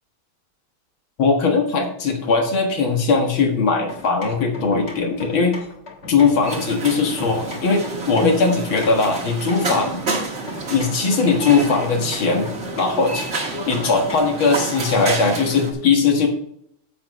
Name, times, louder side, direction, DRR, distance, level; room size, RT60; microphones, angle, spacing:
voice 1, 1.2-5.6 6.1-10.0 10.7-12.5 12.8-13.3 13.7-16.3, left 4 dB, 70° left, 2 dB, 2.5 m, -19 dB
sound 1, 3.9-14.4, left 3 dB, 35° left, 1.3 m, -39 dB
sound 2, 6.4-15.7, right 3 dB, 35° right, 1.7 m, -29 dB
10.0 x 7.9 x 3.2 m, 0.72 s
omnidirectional pair, 2.3 m